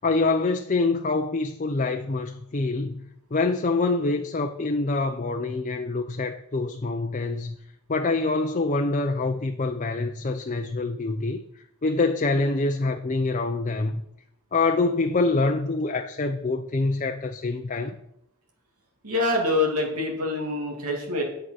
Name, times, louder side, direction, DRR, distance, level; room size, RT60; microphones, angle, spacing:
voice 1, 0.0-3.0 3.3-7.6 7.9-11.4 11.8-14.0 14.5-17.9, left 3 dB, 35° left, 0.6 m, -25 dB
voice 2, 19.0-21.2, left 2 dB, 90° right, 2.5 m, -25 dB
9.7 x 7.7 x 6.3 m
head